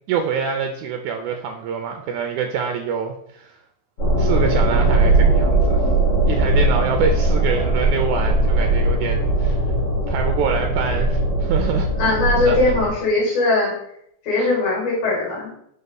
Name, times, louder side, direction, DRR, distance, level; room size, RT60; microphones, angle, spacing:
voice 1, 0.1-3.6 4.2-5.9 6.3-9.6 10.1-11.9 12.4-12.6 14.4-14.5, right 6 dB, 80° right, 4 dB, 1.9 m, -25 dB
sound 1, 4.0-12.9, right 2 dB, 45° left, 2.9 m, -19 dB
voice 2, 12.0-13.7 14.2-15.5, left 2 dB, 70° left, -4 dB, 4.0 m, -20 dB
5.4 x 5.3 x 4.0 m, 0.74 s
omnidirectional pair, 3.6 m